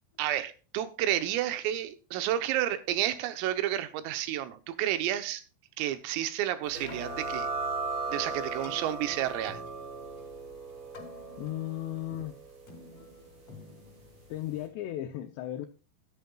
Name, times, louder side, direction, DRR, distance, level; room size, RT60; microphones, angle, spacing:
voice 1, 0.2-5.4 5.8-7.5 8.1-9.6, right 12 dB, 90° right, 3.6 m, -31 dB
Keyboard (musical), 6.7-14.9, left 4 dB, 40° left, 3.0 m, -52 dB
sound 1, 6.7-14.0, right 4 dB, 35° right, 2.0 m, -38 dB
voice 2, 11.4-12.4 14.3-15.7, left 13 dB, 85° left, 2.4 m, -35 dB
13.5 x 10.5 x 2.3 m
omnidirectional pair, 5.8 m